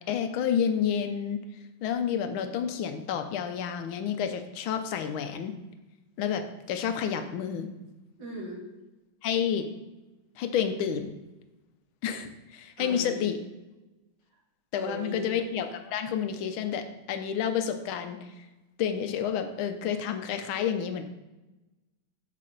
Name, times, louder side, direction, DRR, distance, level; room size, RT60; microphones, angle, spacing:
voice 1, 0.1-1.4 1.8-5.5 6.2-6.4 6.7-7.7 9.2-9.6 10.4-11.1 12.0-13.4 14.7-18.5 18.8-21.0, left 8 dB, 85° left, 8 dB, 1.5 m, -30 dB
voice 2, 8.2-8.6 12.8-13.2 14.7-15.4, equal, 60° right, -6 dB, 3.5 m, -37 dB
7.5 x 6.6 x 3.9 m, 1.0 s
omnidirectional pair, 2.2 m